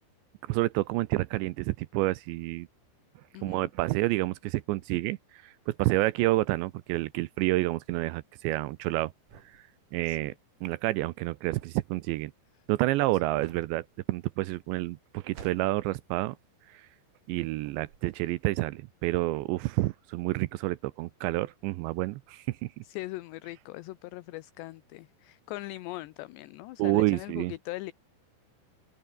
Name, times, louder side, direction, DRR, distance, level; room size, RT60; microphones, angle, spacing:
voice 1, 0.5-2.7 3.4-5.2 5.4-9.1 9.9-10.3 10.6-12.3 12.7-16.4 16.7-16.8 17.3-22.6 26.8-27.5, right 18 dB, 80° right, 2.8 m, -29 dB
voice 2, 3.3-3.7 10.0-10.2 22.8-27.9, left 18 dB, 75° left, 2.9 m, -40 dB
sound 1, 6.1-17.3 17.6-18.4, right 7 dB, 50° right, 4.1 m, -54 dB
omnidirectional pair, 5.4 m